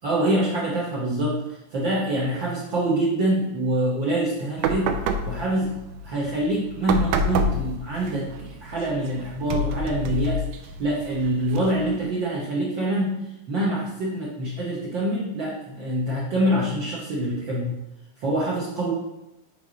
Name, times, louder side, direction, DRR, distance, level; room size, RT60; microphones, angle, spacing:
voice 1, 0.0-5.0 5.2-10.4 10.8-17.8 18.2-18.9, right 1 dB, 75° right, -5 dB, 1.1 m, -25 dB
sound 1, 4.6-12.1, right 1 dB, 90° right, 1.5 m, -29 dB
7.1 x 3.3 x 5.0 m, 0.92 s
omnidirectional pair, 3.7 m